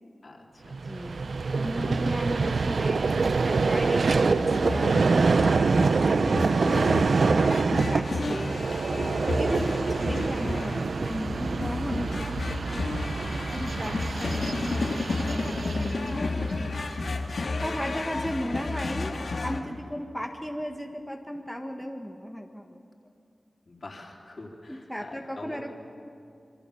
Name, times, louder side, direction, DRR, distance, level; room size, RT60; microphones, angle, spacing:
voice 1, 0.2-0.9 13.7-14.1 17.9-18.1 18.8-19.0 23.7-25.7, left 2 dB, 55° left, -1 dB, 4.0 m, -45 dB
Vehicle, 0.7-17.1, right 4 dB, 75° right, 0.5 m, -26 dB
voice 2, 0.9-3.0 3.4-7.3 7.9-13.0 13.5-16.7 17.6-19.1 19.4-22.9 24.7-25.7, equal, ahead, 2 dB, 1.5 m, -36 dB
sound 1, 4.1-19.6, left 3 dB, 80° left, 1.9 m, -32 dB
27.5 x 23.0 x 7.1 m, 2.5 s
wide cardioid pair, 90°, 0 cm